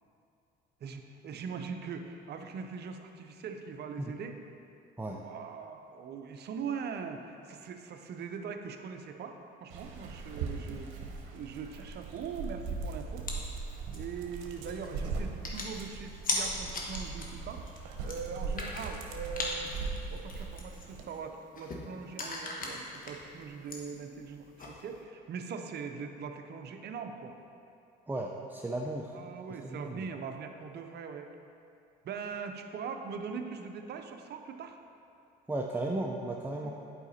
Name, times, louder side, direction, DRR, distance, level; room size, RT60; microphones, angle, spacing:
voice 1, 0.8-4.4 5.1-10.9 11.3-13.3 13.9-17.7 18.0-19.7 20.1-27.4 29.1-31.3 32.0-34.8 36.6-36.7, right 6 dB, 55° right, 6 dB, 0.7 m, -41 dB
Dog, 9.7-21.0, right 4 dB, 75° right, 0.9 m, -40 dB
sound 1, 13.2-25.0, left 2 dB, 40° left, 1.3 m, -41 dB
voice 2, 28.1-29.1 29.6-30.0 35.5-36.7, right 2 dB, 10° right, 0 dB, 0.5 m, -35 dB
8.1 x 5.0 x 4.1 m, 2.6 s
supercardioid pair, 75°, 21 cm